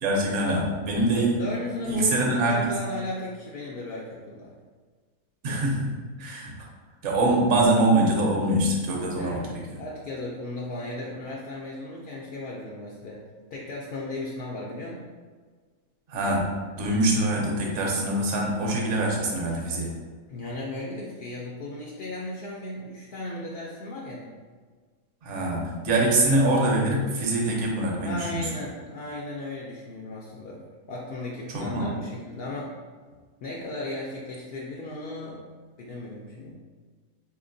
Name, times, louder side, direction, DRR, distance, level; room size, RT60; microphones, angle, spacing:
voice 1, 0.0-1.3 1.8-2.7 5.4-6.5 7.0-9.4 16.1-16.4 16.8-20.0 25.2-28.5 31.5-31.9, right 1 dB, 60° right, -2 dB, 1.0 m, -24 dB
voice 2, 1.1-4.5 9.2-13.2 13.5-15.0 20.3-24.3 28.0-30.6 30.9-32.7 33.4-35.4 35.8-36.5, left 2 dB, 70° left, -3 dB, 0.5 m, -36 dB
4.2 x 2.8 x 2.6 m, 1.5 s
omnidirectional pair, 1.5 m